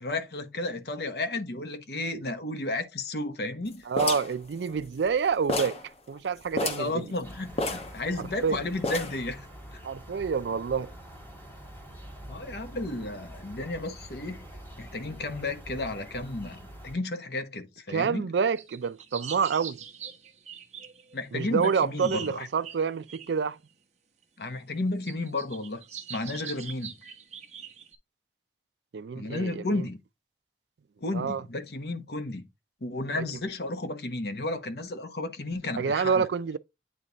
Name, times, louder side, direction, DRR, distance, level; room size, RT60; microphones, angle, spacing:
voice 1, 0.0-3.8 6.8-9.5 9.7-9.8 12.3-14.5 14.8-18.3 21.1-22.5 24.4-25.8 26.1-26.9 29.1-30.0 31.0-32.4 32.8-36.3, left 2 dB, 65° left, 1.0 m, -33 dB
voice 2, 3.9-5.8 6.1-7.1 8.2-8.6 9.8-10.9 17.9-19.8 21.3-23.6 28.9-29.8 31.1-31.4 33.2-33.3 35.8-36.6, right 6 dB, 75° right, 0.4 m, -28 dB
sound 1, 4.0-5.2 5.5-5.9 6.2-6.3 6.5-6.9 7.6-8.4 8.8-9.3, left 2 dB, 35° left, 1.1 m, -31 dB
sound 2, 7.2-16.9, right 1 dB, 10° left, 1.8 m, -45 dB
sound 3, 18.6-21.2 21.6-23.3 24.4-24.5 25.1-28.0, right 8 dB, 40° right, 1.1 m, -42 dB
8.8 x 3.2 x 3.9 m
head